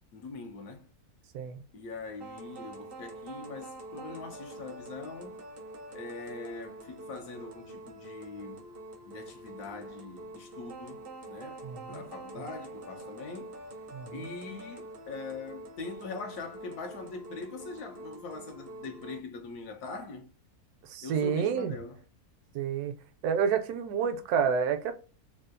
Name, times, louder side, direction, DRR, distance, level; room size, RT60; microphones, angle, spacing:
voice 1, 0.1-0.9 1.7-5.5 5.9-8.7 9.1-13.6 14.1-20.3 21.0-22.0, left 3 dB, 75° left, 1.2 m, -42 dB
sound 1, 2.2-19.2, right 2 dB, 55° right, 0.6 m, -46 dB
voice 2, 11.6-12.0 13.9-14.2 20.9-21.7 22.5-22.9 23.2-24.9, right 7 dB, 80° right, 1.1 m, -29 dB
3.5 x 2.3 x 2.4 m
omnidirectional pair, 1.7 m